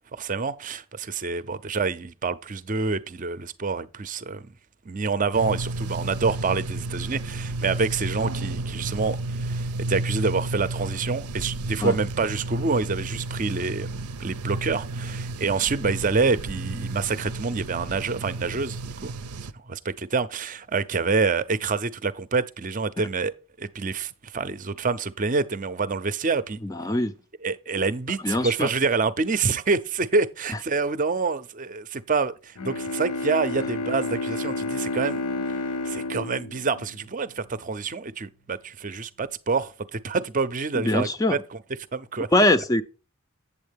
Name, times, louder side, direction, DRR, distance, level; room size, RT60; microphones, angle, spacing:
voice 1, 0.1-4.5 4.9-19.1 19.7-26.6 27.4-35.2 35.8-41.6 41.9-42.3, right 4 dB, 35° right, 0.5 m, -27 dB
sound 1, 5.3-19.5, right 2 dB, 90° right, 0.6 m, -32 dB
voice 2, 26.6-27.1 28.2-28.7 40.7-41.4 42.3-42.8, left 1 dB, 15° left, 0.4 m, -22 dB
Bowed string instrument, 32.6-37.5, left 2 dB, 90° left, 0.7 m, -31 dB
8.6 x 7.4 x 3.5 m
head